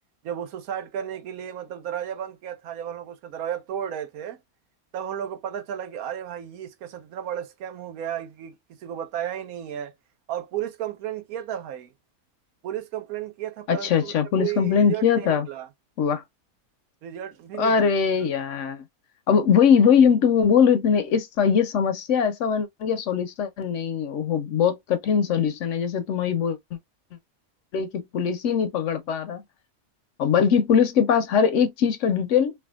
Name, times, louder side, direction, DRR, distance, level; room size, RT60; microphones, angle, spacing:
voice 1, 0.2-4.4 4.9-8.5 8.8-9.9 10.3-11.9 12.6-15.7 17.0-17.9 18.2-18.3, right 10 dB, 80° right, 1.1 m, -33 dB
voice 2, 13.7-15.5 16.0-16.2 17.6-18.8 19.3-26.6 27.7-29.4 30.2-32.5, left 7 dB, 65° left, 0.8 m, -21 dB
3.4 x 2.2 x 2.3 m
omnidirectional pair, 1.5 m